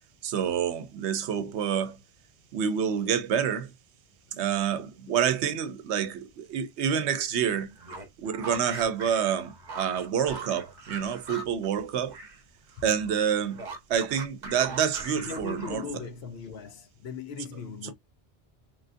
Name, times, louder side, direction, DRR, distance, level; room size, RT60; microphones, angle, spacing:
voice 1, 0.2-2.0 2.5-3.7 4.3-7.7 8.2-12.2 12.8-13.6 13.9-15.8, right 8 dB, 80° right, 0.9 m, -28 dB
sound 1, 7.7-12.4 12.7-16.0, right 3 dB, 45° right, 1.0 m, -41 dB
voice 2, 15.1-17.9, left 5 dB, 70° left, 0.9 m, -39 dB
3.4 x 2.4 x 2.5 m
omnidirectional pair, 1.1 m